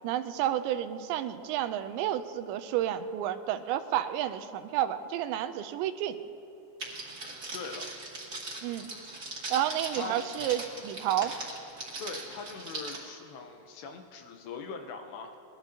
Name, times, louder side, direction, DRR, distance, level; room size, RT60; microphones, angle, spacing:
voice 1, 0.0-6.2 8.6-8.9 9.5-11.3, right 11 dB, 85° right, 10 dB, 2.9 m, -30 dB
Crackle, 6.8-13.0, right 2 dB, 30° right, 2.0 m, -40 dB
voice 2, 7.5-7.9 9.9-10.2 12.0-15.4, left 5 dB, 75° left, 4 dB, 2.9 m, -41 dB
22.0 x 21.5 x 2.9 m, 2.8 s
omnidirectional pair, 5.1 m